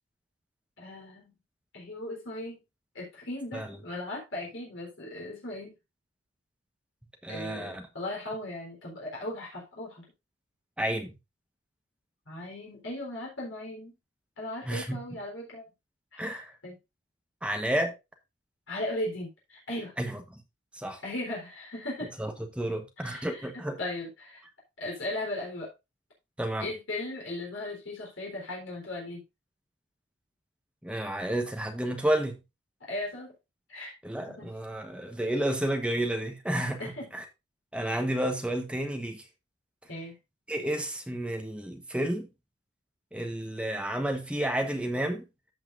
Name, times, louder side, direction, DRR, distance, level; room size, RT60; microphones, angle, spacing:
voice 1, 0.8-1.4 1.7-2.6 2.9-5.7 7.3-10.1 12.3-13.9 14.4-15.7 16.1-16.8 18.7-19.9 21.0-22.1 23.0-24.4 24.8-25.7 26.6-29.2 32.8-33.3 33.7-33.9 34.3-34.5 36.8-37.1 39.9-40.2, left 1 dB, 70° left, 3.8 m, -37 dB
voice 2, 7.2-7.8 10.8-11.2 14.6-15.0 16.2-16.5 17.4-17.9 20.0-20.2 20.7-21.0 22.2-23.8 26.4-26.7 30.8-32.4 34.0-37.2 37.7-39.2 40.5-42.3 43.1-45.3, right 1 dB, 5° right, 1.1 m, -31 dB
14.0 x 5.6 x 2.6 m
head